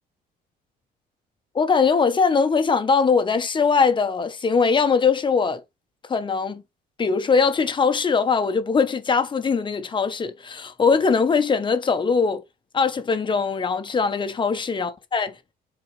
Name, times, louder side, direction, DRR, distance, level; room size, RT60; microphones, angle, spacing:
voice 1, 1.5-5.6 6.1-6.6 7.0-12.4 12.7-15.3, left 5 dB, 30° left, 1.3 m, -21 dB
7.8 x 4.7 x 3.4 m
cardioid pair, 110°, 17 cm